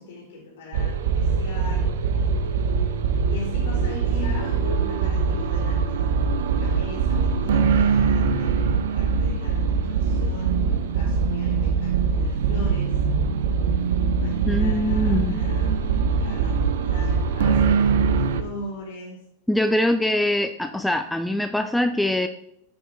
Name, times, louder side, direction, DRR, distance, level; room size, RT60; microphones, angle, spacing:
voice 1, 0.0-1.9 3.3-6.1 6.5-13.0 14.2-19.2, left 1 dB, 55° left, -1 dB, 2.8 m, -39 dB
sound 1, 0.7-18.4, right 5 dB, 60° right, 0.6 m, -22 dB
voice 2, 14.5-15.4 19.5-22.3, left 1 dB, 5° left, 8 dB, 0.4 m, -23 dB
8.8 x 5.1 x 3.7 m, 0.77 s
figure-of-eight pair, 90°, 0 cm